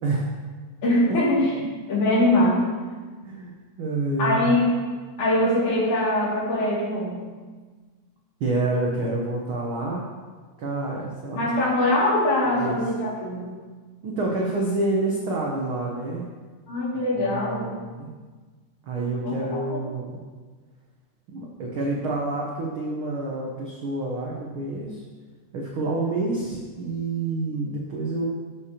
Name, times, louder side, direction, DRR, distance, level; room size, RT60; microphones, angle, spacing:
voice 1, 0.8-1.5 1.9-2.6 4.2-4.7 5.2-7.2 11.4-13.4 16.7-17.7 19.2-19.4 19.7-19.8, left 1 dB, 70° left, -7 dB, 3.9 m, -22 dB
voice 2, 3.8-4.5 8.4-10.0 10.6-11.5 12.5-12.8 14.0-16.3 17.3-18.1 18.9-20.2 21.3-25.0 25.5-28.3, right 2 dB, 80° right, -2 dB, 1.2 m, -28 dB
11.5 x 6.7 x 2.9 m, 1.4 s
omnidirectional pair, 3.6 m